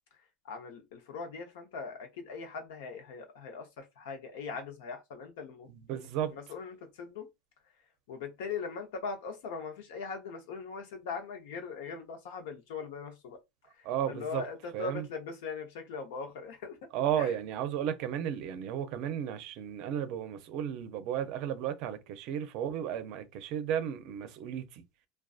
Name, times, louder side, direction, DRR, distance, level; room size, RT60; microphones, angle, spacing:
voice 1, 0.4-5.7 5.9-7.3 8.1-13.4 13.8-16.8 17.2-17.3, left 5 dB, 80° left, 0.8 m, -40 dB
voice 2, 5.7-6.3 13.8-14.4 14.7-15.0 16.9-24.8, right 9 dB, 55° right, 0.5 m, -34 dB
2.5 x 2.2 x 2.4 m
supercardioid pair, 145°, 0 cm